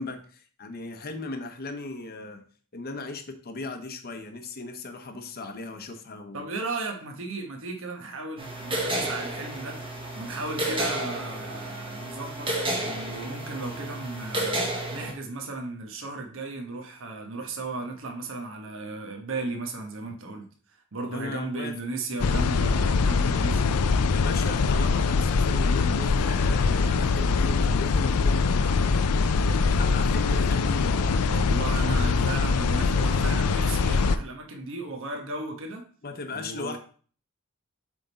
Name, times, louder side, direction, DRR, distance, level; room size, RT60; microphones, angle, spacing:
voice 1, 0.0-2.4 2.7-6.5 21.1-21.7 24.1-28.9 29.6-31.2 36.0-36.8, left 3 dB, 45° left, 6 dB, 0.8 m, -37 dB
voice 2, 6.3-9.8 10.1-20.4 20.9-23.8 31.3-35.9 36.3-36.8, right 2 dB, 60° right, 3 dB, 1.1 m, -35 dB
sound 1, 8.4-15.1, right 1 dB, 25° right, 1.3 m, -31 dB
sound 2, 22.2-34.2, left 4 dB, 85° left, 0.5 m, -23 dB
7.6 x 3.6 x 4.0 m, 0.43 s
head